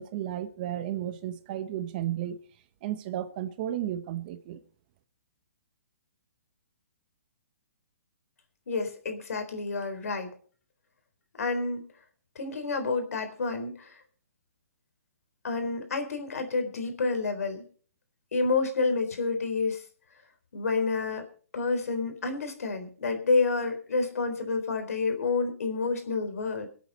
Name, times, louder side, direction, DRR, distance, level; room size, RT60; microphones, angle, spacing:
voice 1, 0.0-2.4 2.8-4.6, right 12 dB, 35° right, 1.1 m, -33 dB
voice 2, 8.7-10.3 11.4-11.9 12.4-14.0 15.4-17.6 18.3-19.8 20.5-21.3 21.5-26.7, left 4 dB, 75° left, 3.9 m, -29 dB
25.0 x 8.5 x 4.2 m
hypercardioid pair, 155°, 8 cm